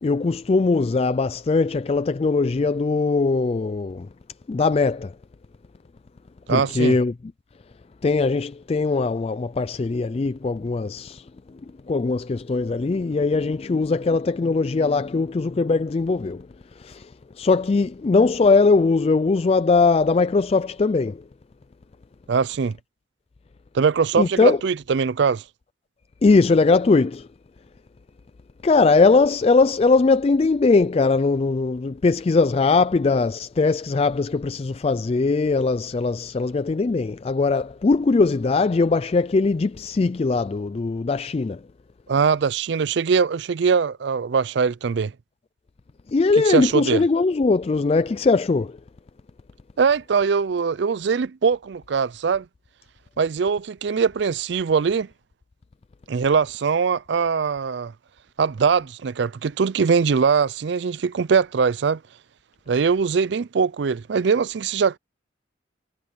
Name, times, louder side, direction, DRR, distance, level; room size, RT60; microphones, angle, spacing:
voice 1, 0.0-4.1 4.5-5.1 6.5-7.1 8.0-11.2 11.9-16.5 16.8-17.1 17.4-21.2 24.2-24.6 26.2-27.3 28.6-41.6 46.1-48.7, left 3 dB, 30° left, 0.3 m, -20 dB
voice 2, 6.5-7.0 22.3-22.8 23.7-25.4 42.1-45.1 46.5-47.1 49.8-52.5 53.2-55.1 56.1-57.9 58.4-62.0 62.7-65.0, right 5 dB, 60° right, 0.4 m, -21 dB
head